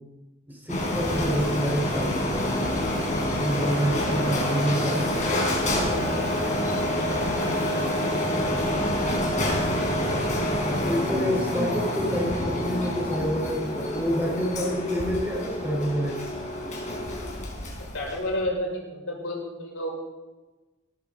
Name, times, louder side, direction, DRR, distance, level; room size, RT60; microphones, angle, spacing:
voice 1, 0.5-5.6 8.3-9.1 10.7-16.2, equal, 10° right, -2 dB, 4.4 m, -28 dB
Printer, 0.7-18.4, left 1 dB, 40° left, 4.4 m, -27 dB
voice 2, 17.8-19.9, left 1 dB, 75° left, -3 dB, 6.3 m, -31 dB
17.0 x 13.5 x 4.0 m, 1.2 s
head